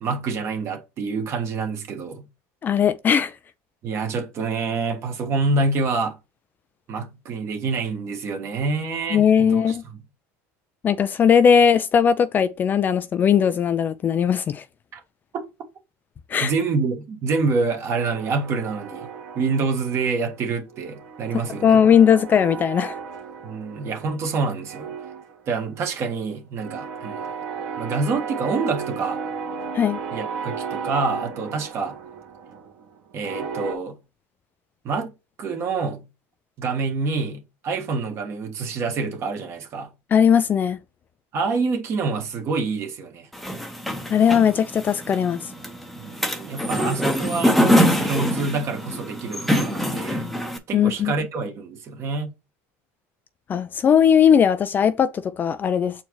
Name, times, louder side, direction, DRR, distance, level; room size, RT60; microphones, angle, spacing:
voice 1, 0.0-2.3 3.8-6.2 6.9-10.0 15.3-15.5 16.4-21.8 23.4-24.9 25.5-27.3 27.8-29.2 30.1-32.0 33.1-34.0 34.8-35.1 35.4-36.1 36.6-39.9 41.3-43.3 46.0-50.3 50.7-52.3, right 4 dB, 40° right, 1.5 m, -27 dB
voice 2, 2.6-3.3 9.1-9.8 10.8-14.6 16.3-16.5 21.6-23.0 29.7-30.0 40.1-40.8 44.1-45.4 50.7-51.1 53.5-55.9, left 7 dB, 30° left, 0.4 m, -18 dB
sound 1, 17.9-20.4 20.7-24.3 24.6-33.7, right 6 dB, 75° right, 1.8 m, -35 dB
sound 2, 43.3-50.6, equal, ahead, 0.9 m, -24 dB
7.0 x 4.4 x 3.1 m
cardioid pair, 135°, 7 cm